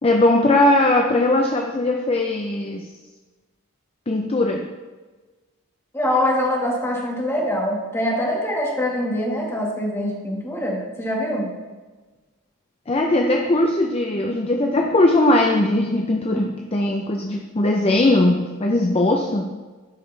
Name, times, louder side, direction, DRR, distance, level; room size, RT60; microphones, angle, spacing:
voice 1, 0.0-2.9 4.1-4.7 12.9-19.6, left 2 dB, 30° left, 2 dB, 0.5 m, -19 dB
voice 2, 5.9-11.5 16.3-16.4, left 1 dB, 10° left, -2 dB, 1.5 m, -24 dB
12.0 x 5.3 x 3.3 m, 1.3 s
head